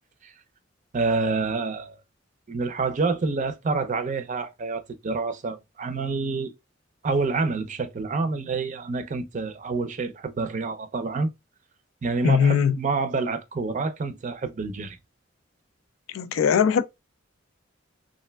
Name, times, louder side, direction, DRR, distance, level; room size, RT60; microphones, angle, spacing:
voice 1, 0.9-2.0 2.5-6.5 7.0-11.3 12.0-15.0, right 4 dB, 40° right, 0.4 m, -27 dB
voice 2, 12.2-12.7 16.1-16.8, left 7 dB, 85° left, 0.3 m, -20 dB
3.2 x 2.5 x 2.2 m
head